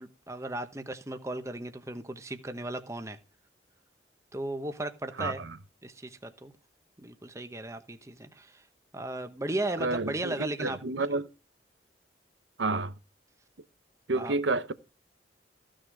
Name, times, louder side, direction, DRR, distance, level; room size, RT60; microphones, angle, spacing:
voice 1, 0.0-3.2 4.3-5.4 5.8-6.5 7.0-8.6 8.9-10.8 14.1-14.3, right 1 dB, 15° right, 1.0 m, -36 dB
voice 2, 5.2-5.6 9.8-11.3 12.6-12.9 14.1-14.7, right 3 dB, 80° right, 0.9 m, -30 dB
15.0 x 6.4 x 4.7 m
head